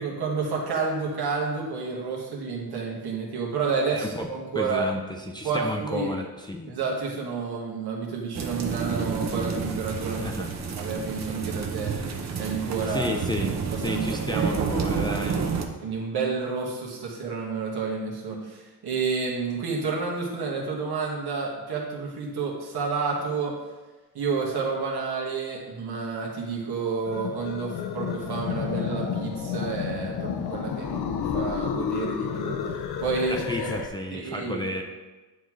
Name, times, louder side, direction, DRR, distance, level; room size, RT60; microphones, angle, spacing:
voice 1, 0.0-4.8 5.4-6.1 6.7-10.5 10.8-11.9 12.4-13.2 13.7-14.1 14.3-14.5 15.2-15.4 15.8-23.5 24.1-32.6 33.0-33.7 34.1-34.6, right 5 dB, 75° right, -2 dB, 1.5 m, -30 dB
voice 2, 3.9-4.3 4.5-6.7 10.2-10.5 12.9-13.5 13.8-15.4 33.2-34.8, left 1 dB, 10° left, 1 dB, 0.4 m, -32 dB
sound 1, 8.3-15.7, right 5 dB, 45° right, 0.6 m, -30 dB
sound 2, 27.1-33.9, left 7 dB, 80° left, 0.6 m, -31 dB
9.1 x 3.9 x 3.1 m, 1.2 s
wide cardioid pair, 150°, 39 cm